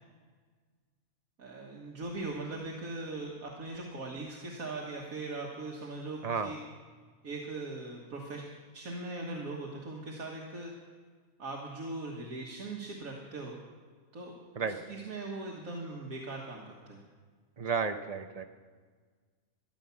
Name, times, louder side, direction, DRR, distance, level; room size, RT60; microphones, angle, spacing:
voice 1, 1.4-6.6 7.2-8.4 8.7-10.7 11.4-13.6 14.1-17.0, right 2 dB, 75° right, -2 dB, 1.9 m, -40 dB
voice 2, 17.6-18.4, right 5 dB, 35° right, 7 dB, 0.7 m, -32 dB
14.0 x 11.0 x 7.0 m, 1.5 s
omnidirectional pair, 1.5 m